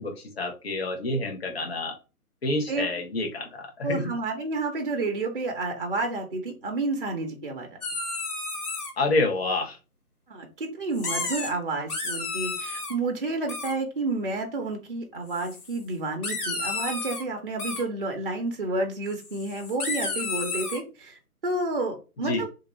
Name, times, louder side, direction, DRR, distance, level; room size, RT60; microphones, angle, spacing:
voice 1, 0.0-1.9 2.4-4.0 9.0-9.8 22.2-22.4, left 2 dB, 40° left, 2 dB, 0.9 m, -28 dB
voice 2, 3.8-7.7 10.3-22.5, right 2 dB, 35° right, 3 dB, 0.6 m, -30 dB
sound 1, 7.8-8.9 10.9-11.5 11.8-12.9 13.5-13.7 15.3-15.8 16.2-17.2 17.6-17.8 19.1-20.8, left 3 dB, 80° left, 1.5 m, -32 dB
2.5 x 2.5 x 3.0 m, 0.31 s
figure-of-eight pair, 155°, 45 cm